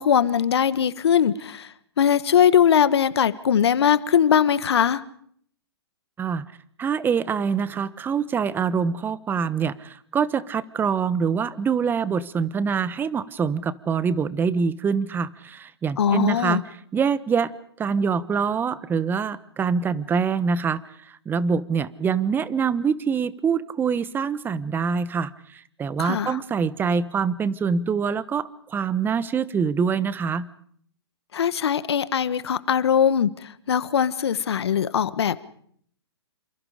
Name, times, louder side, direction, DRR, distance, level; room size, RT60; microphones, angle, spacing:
voice 1, 0.0-5.0 16.0-16.6 26.0-26.4 31.3-35.4, left 8 dB, 70° left, 14 dB, 1.5 m, -21 dB
voice 2, 6.8-16.6 16.9-17.5 17.8-20.8 21.2-30.5, right 6 dB, 15° right, 16 dB, 1.1 m, -25 dB
29.0 x 27.0 x 5.1 m, 0.64 s
hypercardioid pair, 125°, 14 cm